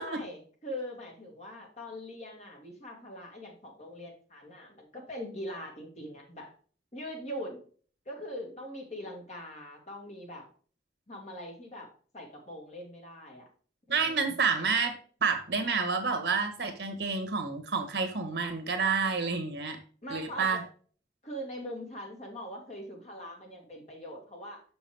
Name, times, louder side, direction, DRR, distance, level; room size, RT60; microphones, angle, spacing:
voice 1, 0.0-6.5 6.9-7.7 8.1-10.5 11.1-13.5 13.9-14.3 20.0-20.6 21.2-24.6, equal, 40° left, 0 dB, 2.1 m, -42 dB
voice 2, 13.9-15.0 15.2-19.8 20.1-20.6, right 5 dB, 80° right, 6 dB, 1.5 m, -29 dB
6.2 x 6.2 x 3.5 m, 0.43 s
head